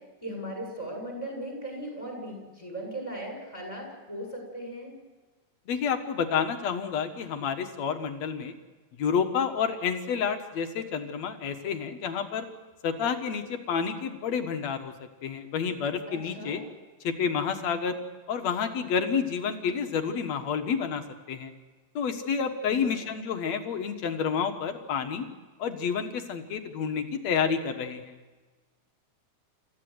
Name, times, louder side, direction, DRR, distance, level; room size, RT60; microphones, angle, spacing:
voice 1, 0.2-4.9 16.1-16.6 22.7-23.0, right 1 dB, 10° left, 1 dB, 7.4 m, -38 dB
voice 2, 5.7-8.6 9.0-12.5 12.8-14.9 15.2-16.6 17.0-18.0 18.3-21.5 22.0-25.3 25.6-28.1, left 6 dB, 65° left, 6 dB, 2.6 m, -29 dB
28.5 x 15.0 x 8.0 m, 1.3 s
omnidirectional pair, 3.4 m